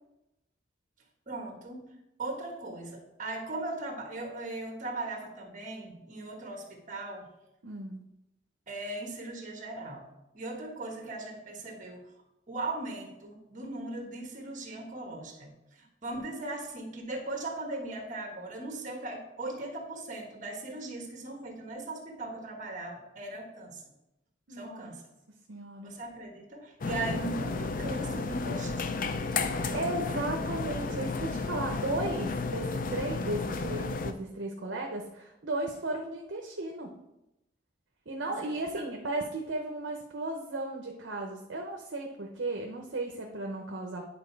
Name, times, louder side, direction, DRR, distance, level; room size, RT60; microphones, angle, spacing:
voice 1, 1.3-1.8 2.2-7.3 8.7-10.1 10.3-12.1 12.5-15.5 15.8-23.8 24.5-25.0 25.8-29.1 29.5-30.1 38.2-38.3 38.7-38.8, right 2 dB, 40° right, 2 dB, 1.4 m, -39 dB
voice 2, 7.6-8.0 24.5-24.9 25.5-25.9 26.9-27.0 29.7-36.9 38.1-44.1, right 2 dB, 65° right, 1 dB, 0.8 m, -35 dB
sound 1, 26.8-34.1, left 3 dB, 45° left, 0.4 m, -32 dB
9.8 x 4.0 x 4.5 m, 0.89 s
head